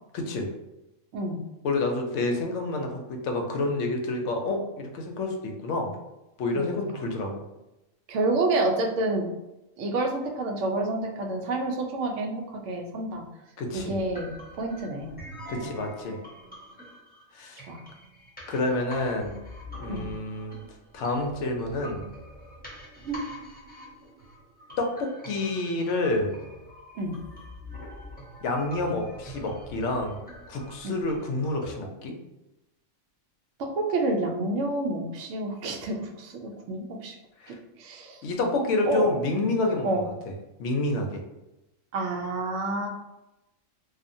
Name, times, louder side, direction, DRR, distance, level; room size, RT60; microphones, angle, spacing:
voice 1, 0.1-0.5 1.6-5.9 6.4-7.4 13.6-14.0 15.5-16.2 17.3-17.6 18.5-19.4 19.8-20.6 20.9-22.1 24.8-26.4 28.4-30.2 30.5-32.2 37.4-37.6 38.2-40.1 40.6-41.2, left 2 dB, 70° left, 3 dB, 0.8 m, -28 dB
voice 2, 8.1-9.3 9.8-13.2 13.7-15.1 15.6-15.7 17.7-17.8 19.9-20.0 23.0-23.2 27.0-27.1 30.8-31.0 33.6-37.1 37.5-38.2 38.9-39.2 39.8-40.1 41.9-42.9, right 2 dB, 70° right, 2 dB, 0.8 m, -29 dB
sound 1, 13.7-31.7, equal, 10° left, 0.6 m, -44 dB
2.8 x 2.4 x 2.5 m, 0.95 s
omnidirectional pair, 1.4 m